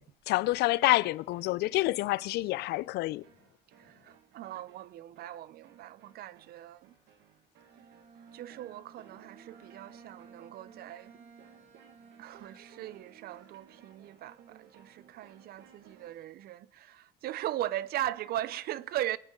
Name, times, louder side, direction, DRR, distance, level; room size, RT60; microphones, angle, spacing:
voice 1, 0.3-3.2, left 18 dB, 80° left, 0.4 m, -27 dB
sound 1, 0.8-16.3, right 8 dB, 80° right, 1.7 m, -60 dB
voice 2, 3.8-6.9 8.3-11.2 12.2-19.2, right 13 dB, 65° right, 0.5 m, -39 dB
Bowed string instrument, 7.6-13.7, right 5 dB, 40° right, 2.2 m, -56 dB
23.0 x 8.9 x 3.7 m
cardioid pair, 110°, 17 cm